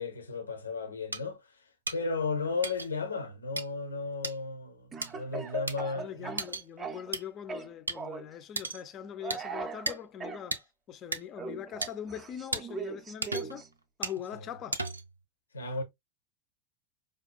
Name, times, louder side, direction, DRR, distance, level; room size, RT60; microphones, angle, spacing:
voice 1, 0.0-6.4 14.3-14.5 15.5-15.8, left 4 dB, 75° left, 0.7 m, -35 dB
sound 1, 1.1-1.2 1.9-2.0 2.6-2.9 3.6-3.7 4.2-4.4 5.0-5.1 5.7-5.8 6.4-6.6 7.1-7.2 7.9-8.0 8.6-8.8 9.3-9.4 9.9-10.0 10.5-10.6 11.1-11.2 11.8-11.9 12.5-12.6 13.2-13.6 14.0-14.2 14.7-15.1, right 3 dB, 80° right, 0.4 m, -34 dB
Speech / Cough, 4.9-7.2 7.5-8.3 9.2-10.4 11.4-13.7, right 4 dB, 20° right, 0.5 m, -39 dB
voice 2, 6.0-10.6 10.9-13.6 14.0-14.8, left 9 dB, 30° left, 0.5 m, -42 dB
5.0 x 2.3 x 2.2 m
figure-of-eight pair, 90°, 0 cm